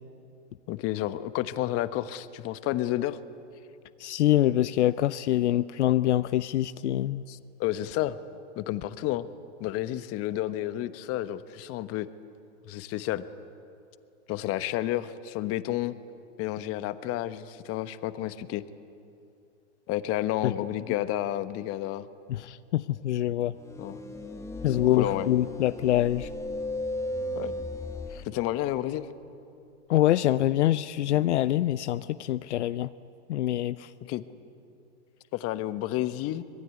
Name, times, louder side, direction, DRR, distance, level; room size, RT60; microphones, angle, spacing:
voice 1, 0.7-3.2 7.3-8.2 8.6-9.3 9.6-12.1 12.6-13.2 14.3-15.9 16.4-18.6 19.9-22.1 23.8-24.0 24.7-25.3 27.3-27.5 28.2-29.1 34.0-34.2 35.3-36.4, left 14 dB, 40° left, 12 dB, 1.2 m, -31 dB
voice 2, 4.0-7.2 20.4-20.5 22.3-23.5 24.6-26.3 28.1-28.2 29.9-32.9 33.3-33.9, left 13 dB, 80° left, 14 dB, 0.7 m, -25 dB
sound 1, 23.6-28.3, left 1 dB, 10° left, 1.7 m, -35 dB
25.5 x 20.5 x 9.5 m, 2.6 s
hypercardioid pair, 110°, 34 cm